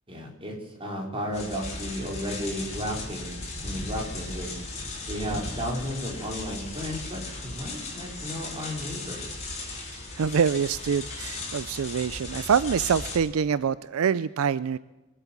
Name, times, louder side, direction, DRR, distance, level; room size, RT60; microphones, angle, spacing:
voice 1, 0.1-3.4 3.6-4.5 5.1-9.2, equal, 25° right, 0 dB, 3.8 m, -33 dB
sound 1, 1.3-13.2, left 2 dB, 30° left, 3.9 m, -36 dB
voice 2, 9.9-14.8, right 7 dB, 75° right, 17 dB, 0.4 m, -25 dB
24.0 x 8.3 x 7.3 m, 1.1 s
head